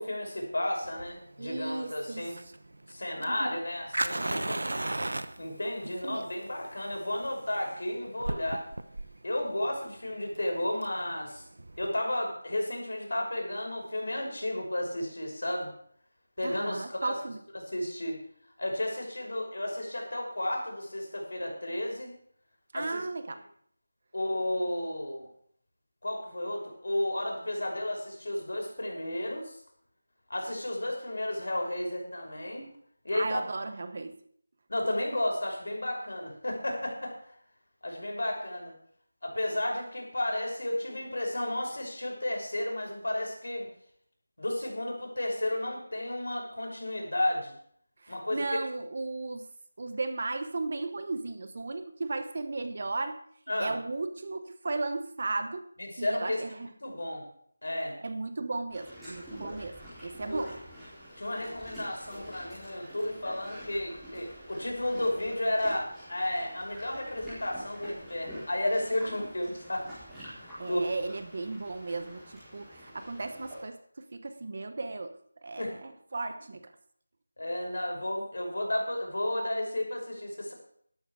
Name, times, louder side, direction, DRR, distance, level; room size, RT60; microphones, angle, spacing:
voice 1, 0.0-2.4 2.9-4.6 5.4-8.7 9.2-11.4 11.8-15.7 16.4-17.1 17.7-18.2 18.6-22.1 22.7-23.0 24.1-25.3 26.0-29.6 30.3-32.7 33.0-33.4 34.7-37.3 37.8-38.8 39.2-43.7 44.4-47.6 48.1-48.6 53.5-53.8 55.8-56.4 56.8-57.3 57.6-58.0 60.2-60.5 61.2-69.9 70.4-70.8 75.6-75.8 77.4-80.5, left 1 dB, 70° left, 1 dB, 5.5 m, -33 dB
Fire, 0.8-11.9, right 2 dB, 85° right, 1.1 m, -37 dB
voice 2, 1.4-2.3 3.2-3.6 6.0-6.3 16.4-17.4 22.7-23.4 33.1-34.2 48.0-49.5 49.8-53.2 53.6-55.7 56.0-56.7 58.0-60.6 70.6-76.7, right 3 dB, 35° right, 10 dB, 0.9 m, -35 dB
sound 1, 58.7-73.6, equal, ahead, 3.9 m, -47 dB
12.5 x 12.5 x 4.7 m, 0.65 s
figure-of-eight pair, 180°, 0 cm